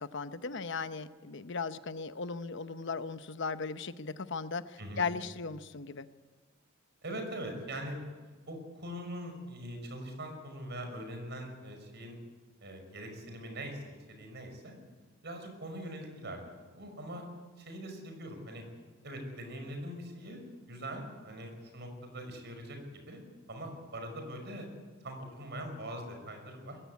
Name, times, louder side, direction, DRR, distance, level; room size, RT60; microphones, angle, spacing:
voice 1, 0.0-6.1, left 4 dB, 65° left, 12 dB, 0.9 m, -37 dB
voice 2, 7.0-8.0 8.5-12.2 12.6-14.7 15.2-17.2 17.6-18.6 19.0-22.8 23.1-23.2 23.5-24.7 25.0-26.8, right 1 dB, 60° right, 5 dB, 5.7 m, -42 dB
21.5 x 15.5 x 9.6 m, 1.4 s
head